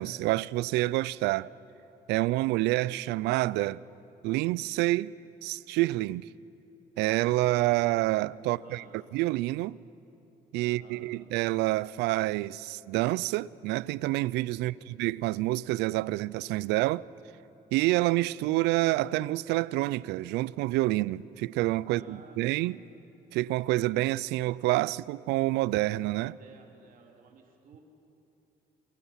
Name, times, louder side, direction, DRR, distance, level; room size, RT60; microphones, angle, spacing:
voice 1, 0.0-1.5 2.1-3.8 4.2-5.1 5.4-6.3 7.0-8.8 9.1-9.8 10.5-14.7 15.0-17.1 17.7-22.8 23.3-26.3, right 18 dB, 90° right, 0.4 m, -28 dB
voice 2, 8.4-9.0 10.6-11.2 14.5-14.9 21.8-22.9 26.2-27.8, right 4 dB, 55° right, 3.0 m, -54 dB
27.5 x 19.5 x 5.7 m
cardioid pair, 110°, 17 cm